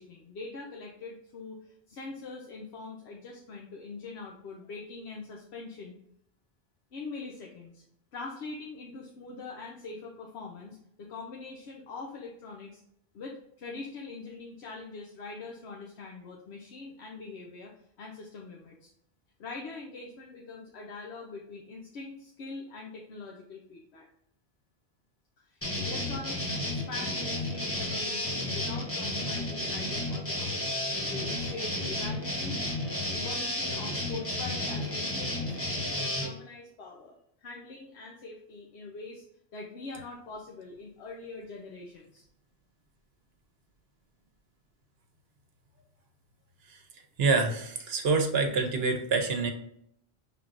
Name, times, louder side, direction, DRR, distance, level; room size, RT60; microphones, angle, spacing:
voice 1, 0.0-6.0 6.9-7.8 8.1-12.8 13.1-17.7 18.0-18.9 19.4-24.1 25.4-30.7 31.1-32.6 33.1-37.1 37.4-39.2 39.5-42.2, left 3 dB, 80° left, -1 dB, 1.0 m, -43 dB
sound 1, 25.6-36.3, left 1 dB, 15° left, 0.8 m, -32 dB
voice 2, 47.2-49.5, right 4 dB, 70° right, 5 dB, 1.0 m, -26 dB
5.8 x 3.6 x 2.5 m, 0.73 s
omnidirectional pair, 1.1 m